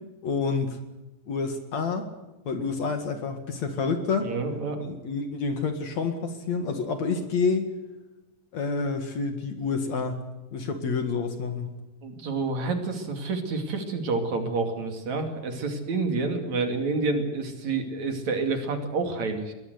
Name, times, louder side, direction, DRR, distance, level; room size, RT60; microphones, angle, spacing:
voice 1, 0.2-0.8 1.3-2.1 2.5-4.3 4.8-7.7 8.5-10.3 10.5-11.7, left 4 dB, 55° left, 7 dB, 2.9 m, -28 dB
voice 2, 4.2-4.8 12.0-19.5, right 3 dB, 55° right, 6 dB, 3.7 m, -28 dB
22.5 x 18.0 x 8.0 m, 1.1 s
omnidirectional pair, 4.2 m